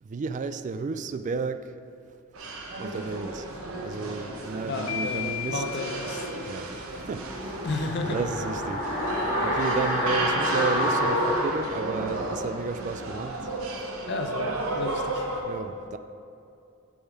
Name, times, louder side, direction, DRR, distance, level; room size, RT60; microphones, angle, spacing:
voice 1, 0.0-1.7 2.8-3.5 3.8-5.6 6.5-13.5 15.5-16.0, right 4 dB, 35° right, 11 dB, 0.3 m, -33 dB
sound 1, 2.3-15.4, right 2 dB, 80° right, 0.9 m, -33 dB
voice 2, 4.7-6.2 7.6-8.1 14.1-15.3, left 3 dB, 55° left, 4 dB, 0.7 m, -32 dB
sound 2, 4.9-7.0, left 9 dB, 85° left, 1.5 m, -36 dB
sound 3, 7.2-12.3 12.6-12.7, left 1 dB, 30° left, 1.8 m, -28 dB
6.7 x 6.3 x 5.1 m, 2.7 s
head